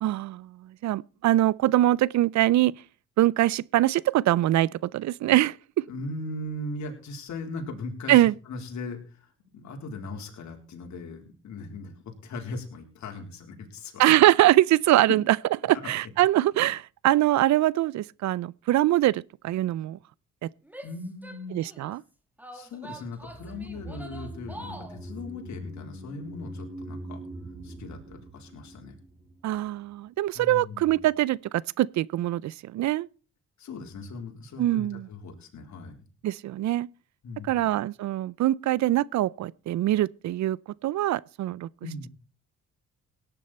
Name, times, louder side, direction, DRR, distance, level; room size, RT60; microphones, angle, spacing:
voice 1, 0.0-2.7 3.2-5.8 8.1-8.3 14.0-15.4 15.6-20.0 20.4-20.5 21.5-22.0 29.4-33.1 34.6-35.1 36.2-36.9 37.4-40.6 40.8-41.7, right 14 dB, 70° right, 0.5 m, -23 dB
voice 2, 5.9-14.0 20.8-21.6 22.5-27.2 27.6-29.0 30.3-31.0 33.6-36.0 37.2-37.7 41.8-42.1, left 2 dB, 65° left, 4.0 m, -39 dB
Female speech woman speaking / Yell, 20.6-21.9 22.4-25.0, right 1 dB, 5° right, 2.1 m, -45 dB
sound 1, 23.2-29.6 29.9-30.0, right 1 dB, 30° right, 4.0 m, -42 dB
17.5 x 9.9 x 4.2 m
cardioid pair, 90°, 30 cm